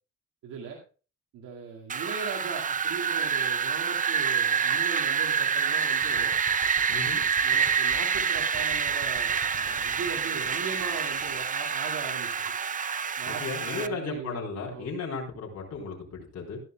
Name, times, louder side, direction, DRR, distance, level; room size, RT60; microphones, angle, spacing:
voice 1, 0.4-0.8 1.3-6.3 7.4-12.3 13.2-14.9, right 5 dB, 90° right, -2 dB, 2.1 m, -39 dB
Wind, 1.9-13.9, right 7 dB, 25° right, 0.5 m, -27 dB
sound 1, 5.9-11.5, right 7 dB, 60° right, 4.1 m, -43 dB
voice 2, 6.9-7.2 13.3-16.6, left 4 dB, 55° left, -1 dB, 4.0 m, -35 dB
14.5 x 11.0 x 2.3 m, 0.35 s
cardioid pair, 90°, 30 cm